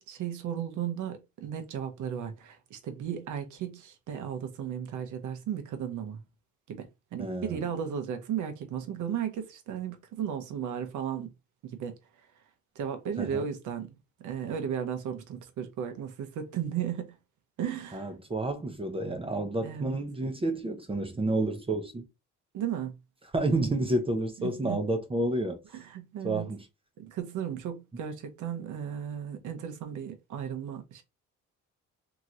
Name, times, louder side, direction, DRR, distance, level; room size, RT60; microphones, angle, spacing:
voice 1, 0.0-6.2 6.7-6.9 7.1-11.3 11.6-11.9 12.8-13.9 14.2-17.1 17.6-18.1 19.6-20.0 22.5-22.9 24.4-24.8 25.7-26.5 27.0-31.0, right 8 dB, 75° right, 0.9 m, -35 dB
voice 2, 7.2-7.7 13.2-13.4 17.9-22.1 23.3-25.6 26.2-26.6, right 2 dB, 20° right, 0.6 m, -30 dB
3.0 x 2.9 x 2.5 m
cardioid pair, 90°, 30 cm